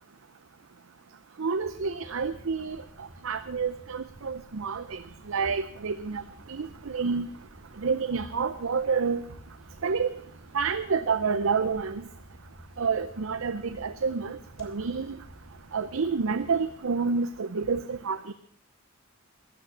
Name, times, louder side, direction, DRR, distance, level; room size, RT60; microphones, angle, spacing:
voice 1, 1.4-2.8 3.2-5.0 5.3-6.2 6.5-7.3 7.8-9.2 9.8-10.1 10.5-12.0 12.8-15.2 15.7-18.3, right 5 dB, 75° right, 11 dB, 0.6 m, -28 dB
sound 1, 1.6-16.8, right 1 dB, 5° right, 5.2 m, -52 dB
sound 2, 5.4-5.9 7.5-8.5 8.9-9.5 10.2-10.9 11.9-12.4 13.5-14.0 14.5-14.8, equal, 70° left, 3.0 m, -51 dB
14.5 x 9.3 x 7.2 m, 0.65 s
head